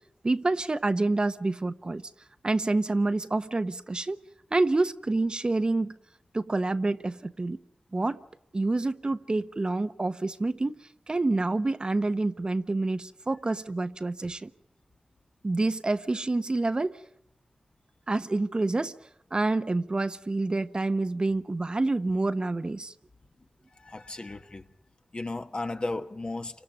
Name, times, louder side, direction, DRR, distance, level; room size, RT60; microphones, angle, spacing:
voice 1, 0.2-2.0 2.4-4.2 4.5-6.0 6.3-7.6 7.9-8.2 8.5-10.7 11.1-14.5 15.4-17.0 18.1-18.9 19.3-22.9, right 2 dB, 35° right, 1.0 m, -27 dB
voice 2, 23.7-24.7 25.1-26.6, left 2 dB, 40° left, 1.5 m, -35 dB
29.5 x 25.5 x 5.3 m
wide cardioid pair, 80°, 3 cm